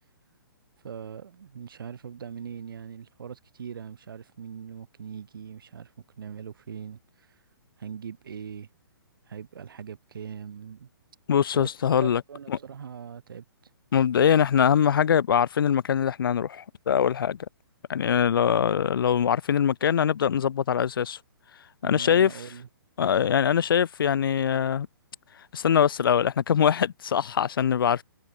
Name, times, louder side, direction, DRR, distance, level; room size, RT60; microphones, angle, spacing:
voice 1, 0.8-7.3 7.8-8.7 9.3-10.9 11.5-11.7 12.0-13.4 21.8-22.7, right 7 dB, 65° right, 4.2 m, -41 dB
voice 2, 11.3-12.2 12.5-12.6 13.9-17.4 17.9-21.2 21.8-22.3 23.0-24.9 25.5-28.0, left 8 dB, 70° left, 0.5 m, -23 dB
hypercardioid pair, 135°, 12 cm